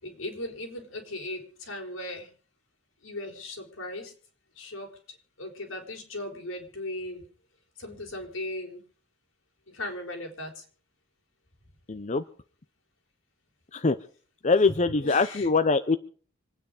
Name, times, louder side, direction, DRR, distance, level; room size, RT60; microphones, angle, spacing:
voice 1, 0.0-2.3 3.0-4.1 4.5-7.3 7.8-8.8 9.7-10.6 14.9-15.5, left 1 dB, 85° left, 2 dB, 4.9 m, -38 dB
voice 2, 11.9-12.2 13.7-14.0 14.4-16.0, left 3 dB, 35° left, 11 dB, 0.7 m, -23 dB
26.5 x 9.5 x 5.1 m, 0.42 s
head